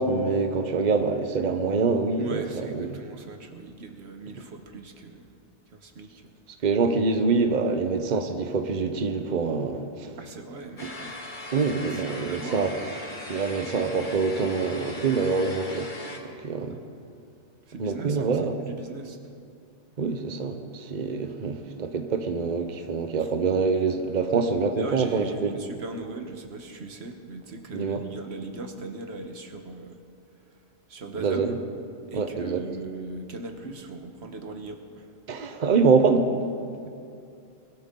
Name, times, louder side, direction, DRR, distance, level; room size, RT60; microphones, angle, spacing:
voice 1, 0.0-3.0 6.6-10.1 11.5-12.7 13.3-15.9 16.2-16.8 17.8-18.5 20.0-25.6 27.7-28.0 31.2-31.5 32.1-32.6 35.3-36.3, right 4 dB, 45° right, 7 dB, 1.0 m, -25 dB
voice 2, 2.2-5.3 5.7-6.3 10.2-11.3 11.9-12.6 17.7-18.3 18.6-19.2 23.2-23.3 24.8-30.0 30.9-31.6 32.1-35.1, right 3 dB, 85° right, 5 dB, 1.4 m, -39 dB
sound 1, 10.8-16.2, left 2 dB, 50° left, 1.5 m, -39 dB
22.0 x 12.5 x 3.8 m, 2.5 s
omnidirectional pair, 1.1 m